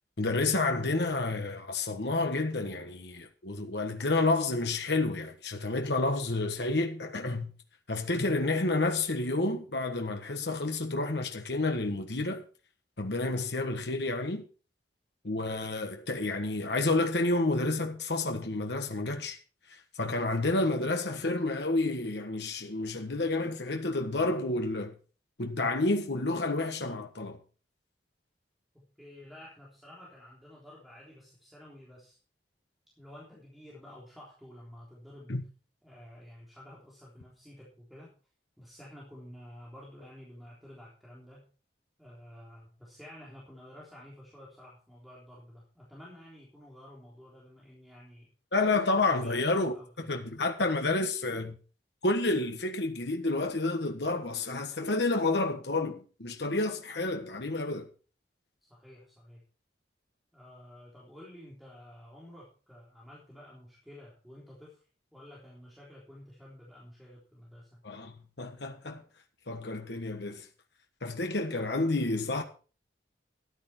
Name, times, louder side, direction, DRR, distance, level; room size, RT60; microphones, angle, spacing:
voice 1, 0.2-7.5 7.9-12.4 13.0-14.5 15.2-19.4 19.7-24.9 25.4-27.4 35.3-35.4 48.5-51.6 52.0-57.9 67.8-69.0 69.5-70.5 71.0-72.4, left 2 dB, 65° left, 1.4 m, -30 dB
voice 2, 28.7-32.2 33.0-35.3 35.8-38.1 38.6-41.5 42.0-48.3 49.1-50.1 58.7-59.4 60.3-64.9 65.1-67.8, left 1 dB, ahead, 3.6 m, -51 dB
13.0 x 10.5 x 4.4 m
head